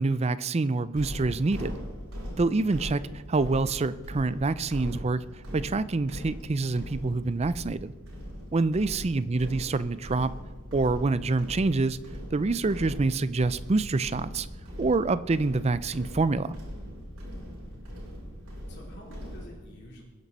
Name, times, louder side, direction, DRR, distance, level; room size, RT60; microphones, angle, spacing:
voice 1, 0.0-1.8 2.4-3.0 3.3-5.2 5.5-7.9 8.5-10.3 10.7-12.0 12.3-14.5 14.8-16.5, right 3 dB, 30° right, 15 dB, 0.4 m, -26 dB
sound 1, 1.0-19.5, equal, 80° right, 6.1 m, -40 dB
voice 2, 17.7-18.1 18.7-20.0, equal, 50° left, -2 dB, 3.7 m, -50 dB
21.5 x 10.5 x 4.2 m, 1.3 s
head